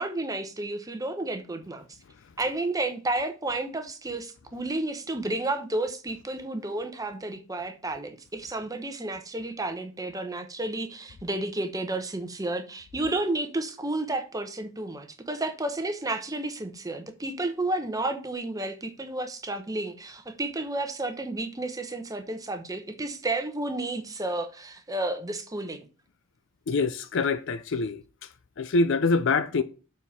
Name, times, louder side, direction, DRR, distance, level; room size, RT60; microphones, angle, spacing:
voice 1, 0.0-1.8 2.4-25.9, right 2 dB, 15° right, 0.9 m, -31 dB
voice 2, 26.7-28.0 28.6-29.6, left 3 dB, 60° left, 0.5 m, -25 dB
7.0 x 4.3 x 5.5 m
head